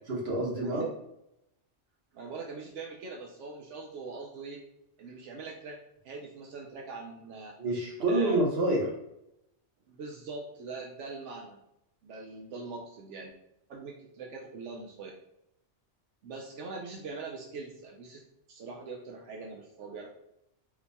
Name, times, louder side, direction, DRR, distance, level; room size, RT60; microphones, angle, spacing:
voice 1, 0.1-0.8 7.6-8.9, right 1 dB, 60° right, -1 dB, 1.3 m, -27 dB
voice 2, 2.1-4.6 5.0-5.8 6.0-7.5 8.1-8.4 9.9-11.6 12.0-13.3 13.7-15.1 16.2-18.2 18.5-20.1, right 4 dB, 85° right, -1 dB, 1.0 m, -42 dB
4.2 x 2.2 x 4.1 m, 0.80 s
omnidirectional pair, 1.2 m